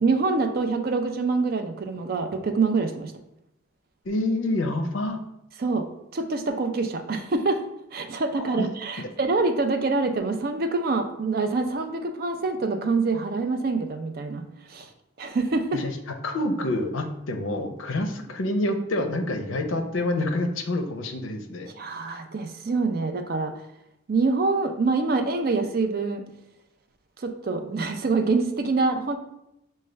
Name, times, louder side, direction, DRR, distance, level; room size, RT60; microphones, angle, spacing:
voice 1, 0.0-3.1 5.6-5.9 6.1-7.6 7.9-14.9 15.2-15.8 21.8-23.5 24.1-26.2 27.2-29.2, right 3 dB, 50° right, 6 dB, 0.4 m, -25 dB
voice 2, 4.0-5.2 8.4-8.7 15.7-15.9 16.2-21.7, left 1 dB, 80° left, 6 dB, 0.5 m, -27 dB
6.2 x 2.2 x 3.3 m, 0.85 s
head